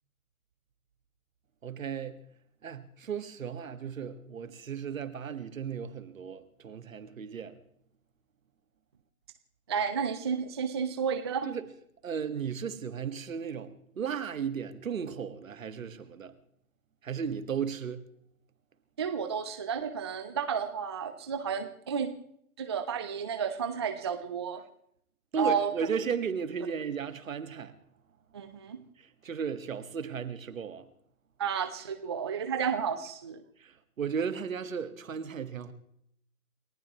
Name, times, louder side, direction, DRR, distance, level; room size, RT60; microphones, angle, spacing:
voice 1, 1.6-2.2 2.6-7.6 11.5-11.7 12.0-16.4 17.0-18.0 25.3-27.7 29.0-30.9 33.6-35.7, right 7 dB, 60° right, 1.8 m, -35 dB
voice 2, 9.7-11.5 19.0-22.1 22.6-24.6 25.4-25.9 28.3-28.8 31.4-33.4, right 6 dB, 20° right, 0.5 m, -32 dB
29.5 x 15.0 x 3.0 m
figure-of-eight pair, 145°, 44 cm